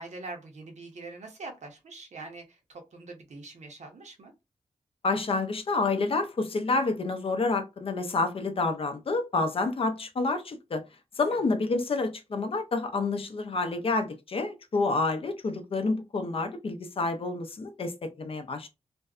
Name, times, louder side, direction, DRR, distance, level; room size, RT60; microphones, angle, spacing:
voice 1, 0.0-4.3, right 3 dB, 70° right, 0.8 m, -43 dB
voice 2, 5.0-10.8 11.2-18.7, left 3 dB, 50° left, 0.5 m, -28 dB
2.5 x 2.1 x 2.3 m
wide cardioid pair, 105°, 12 cm